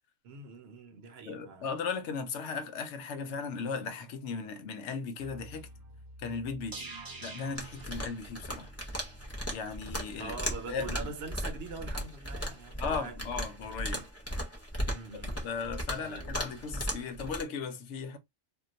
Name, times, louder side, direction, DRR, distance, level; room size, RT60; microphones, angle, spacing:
voice 1, 0.2-1.7 10.2-13.2 14.8-15.4 15.9-16.3, right 4 dB, 65° right, 0.8 m, -43 dB
voice 2, 1.3-5.7 6.2-6.9 7.2-8.7 9.5-10.4 10.7-11.1 12.8-14.1 15.4-18.2, left 5 dB, 85° left, 0.9 m, -37 dB
sound 1, 5.2-9.4 9.7-9.8, right 2 dB, 35° right, 0.3 m, -47 dB
sound 2, 7.6-17.4, equal, 15° left, 0.6 m, -37 dB
2.3 x 2.2 x 3.8 m
omnidirectional pair, 1.2 m